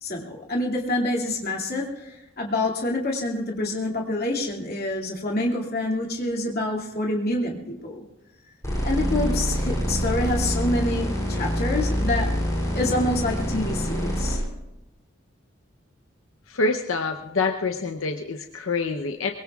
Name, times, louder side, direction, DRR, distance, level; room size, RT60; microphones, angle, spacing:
voice 1, 0.0-7.6 7.8-8.0 8.8-12.3 12.8-14.4, left 1 dB, 50° left, -2 dB, 2.4 m, -27 dB
sound 1, 8.6-14.4, equal, 15° left, 7.1 m, -26 dB
voice 2, 16.5-19.3, left 3 dB, 85° left, 4 dB, 0.8 m, -26 dB
23.0 x 22.5 x 2.4 m, 0.94 s
head